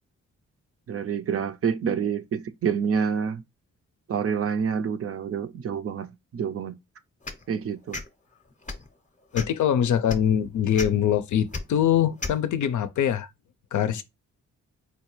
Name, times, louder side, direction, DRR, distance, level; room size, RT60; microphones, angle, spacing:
voice 1, 0.9-3.4 4.1-6.8 7.5-8.0, right 7 dB, 50° right, 0.5 m, -28 dB
sound 1, 7.2-7.4 7.9-8.1 8.6-8.9 9.3-9.6 10.1-10.2 10.7-10.9 11.5-11.6 12.2-12.4, left 3 dB, 25° left, 0.6 m, -32 dB
voice 2, 9.3-13.3 13.7-14.0, left 9 dB, 70° left, 0.5 m, -23 dB
4.1 x 2.3 x 2.9 m
cardioid pair, 55°, 31 cm